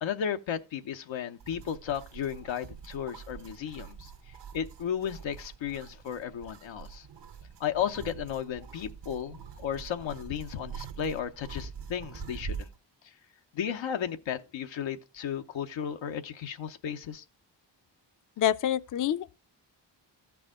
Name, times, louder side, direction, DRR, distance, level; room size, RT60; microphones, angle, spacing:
voice 1, 0.0-4.1 4.5-7.1 7.6-12.7 13.5-17.2, left 8 dB, 90° left, 0.8 m, -34 dB
sound 1, 1.4-12.8, right 7 dB, 65° right, 0.9 m, -45 dB
voice 2, 18.4-19.4, left 10 dB, 45° left, 0.5 m, -27 dB
14.0 x 4.8 x 3.6 m
cardioid pair, 60°, 45 cm